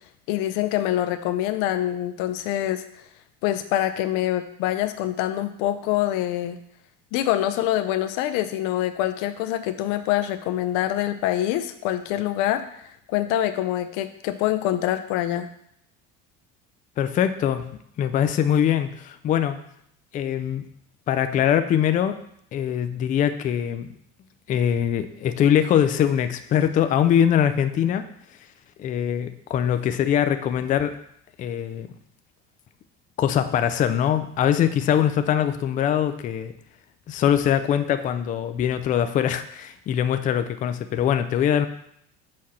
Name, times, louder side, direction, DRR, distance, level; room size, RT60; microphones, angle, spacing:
voice 1, 0.3-2.8 3.4-6.6 7.1-15.5, left 13 dB, 80° left, 9 dB, 0.6 m, -25 dB
voice 2, 17.0-17.6 18.0-19.6 20.1-20.6 21.1-22.2 22.5-23.9 24.5-28.1 28.8-31.0 31.4-31.9 33.2-36.5 37.1-41.7, left 9 dB, 25° left, 9 dB, 0.3 m, -22 dB
5.9 x 4.2 x 6.3 m, 0.71 s
cardioid pair, 160°, 30 cm